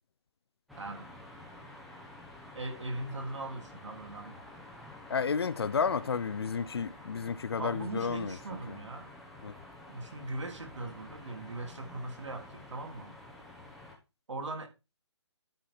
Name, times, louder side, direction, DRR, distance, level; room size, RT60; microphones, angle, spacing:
sound 1, 0.7-14.0, left 1 dB, ahead, 0.9 m, -50 dB
voice 1, 0.8-1.1 2.5-4.4 7.6-9.1 9.9-13.2 14.3-14.7, right 2 dB, 75° right, 3.7 m, -40 dB
voice 2, 5.1-8.4 8.7-8.8 9.4-9.5, left 6 dB, 55° left, 0.7 m, -31 dB
12.0 x 4.8 x 5.7 m
hypercardioid pair, 170°, 15 cm